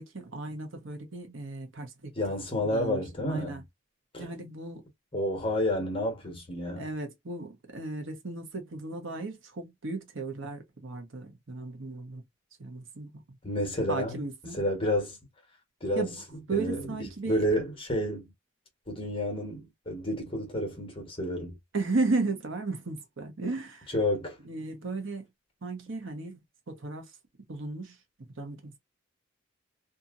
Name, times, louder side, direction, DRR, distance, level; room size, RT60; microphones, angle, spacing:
voice 1, 0.0-2.1 2.6-3.6 4.2-4.8 6.8-12.2 12.6-13.1 13.9-14.6 15.9-16.2 16.5-17.6 21.7-23.9 24.4-25.3 25.6-27.1 27.5-28.0 28.4-28.8, right 3 dB, 70° right, 1.0 m, -35 dB
voice 2, 2.1-3.6 4.1-4.3 5.1-6.8 13.4-14.2 14.6-15.2 15.8-16.1 16.5-16.9 17.3-18.3 18.9-21.6 23.9-24.4, left 1 dB, 25° left, 1.2 m, -30 dB
2.7 x 2.6 x 2.5 m
head